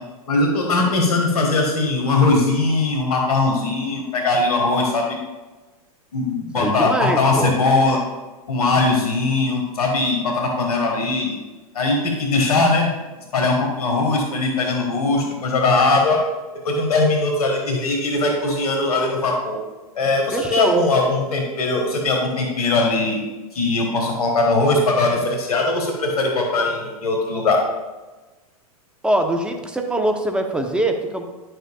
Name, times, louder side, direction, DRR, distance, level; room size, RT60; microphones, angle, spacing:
voice 1, 0.3-5.2 6.1-8.0 8.5-11.4 11.7-12.9 13.3-16.2 16.6-19.6 19.9-23.2 23.5-27.6, left 3 dB, 80° left, 1 dB, 1.5 m, -20 dB
voice 2, 6.6-7.6 20.3-20.9 29.0-31.2, right 1 dB, 5° right, 4 dB, 0.8 m, -22 dB
10.5 x 6.5 x 2.3 m, 1.2 s
hypercardioid pair, 105°, 19 cm